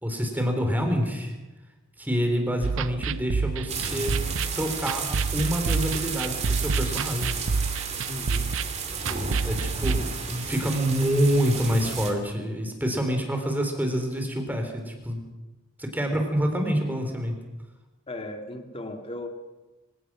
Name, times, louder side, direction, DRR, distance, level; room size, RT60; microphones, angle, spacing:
voice 1, 0.0-1.3 2.0-4.2 4.6-7.3 9.4-15.2 15.8-17.3, equal, 10° right, 4 dB, 3.6 m, -27 dB
sound 1, 2.6-10.0, right 4 dB, 65° right, 0.6 m, -29 dB
sound 2, 3.7-12.1, right 5 dB, 30° right, 3.1 m, -33 dB
voice 2, 8.1-8.6 9.1-9.4 18.1-19.3, left 1 dB, 25° left, 5 dB, 2.2 m, -37 dB
25.0 x 17.0 x 6.2 m, 1.1 s
head